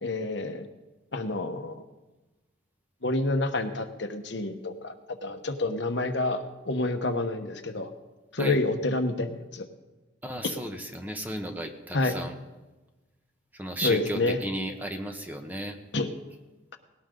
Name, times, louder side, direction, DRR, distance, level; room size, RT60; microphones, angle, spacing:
voice 1, 0.0-0.7 1.1-1.8 3.0-4.9 5.2-7.9 8.3-9.7 10.4-10.5 11.9-12.1 13.8-14.4 15.9-16.1, left 2 dB, 60° left, 6 dB, 1.2 m, -28 dB
voice 2, 10.2-12.4 13.5-15.8, right 1 dB, 10° right, 4 dB, 1.1 m, -34 dB
19.5 x 17.5 x 3.9 m, 1.1 s
head